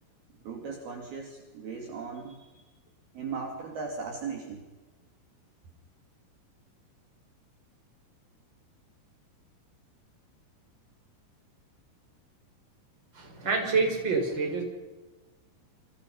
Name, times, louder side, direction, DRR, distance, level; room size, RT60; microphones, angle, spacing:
voice 1, 0.4-2.6 3.1-4.6, right 5 dB, 55° right, 1 dB, 4.2 m, -38 dB
voice 2, 13.1-14.6, right 4 dB, 25° right, 2 dB, 5.4 m, -27 dB
30.0 x 26.5 x 5.6 m, 1.3 s
omnidirectional pair, 5.9 m